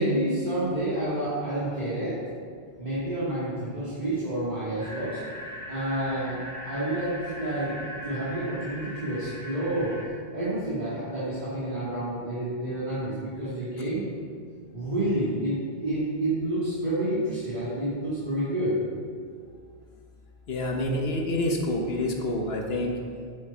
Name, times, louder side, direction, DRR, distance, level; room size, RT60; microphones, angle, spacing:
voice 1, 0.0-2.2 2.8-5.2 5.7-6.4 6.6-7.7 8.0-10.0 10.3-14.1 14.7-18.8, right 1 dB, 45° right, -12 dB, 2.4 m, -29 dB
sound 1, 4.8-10.1, equal, 15° left, 1.5 m, -40 dB
voice 2, 20.5-22.9, left 1 dB, 75° left, 1 dB, 1.3 m, -27 dB
8.5 x 8.3 x 4.4 m, 2.1 s
omnidirectional pair, 1.1 m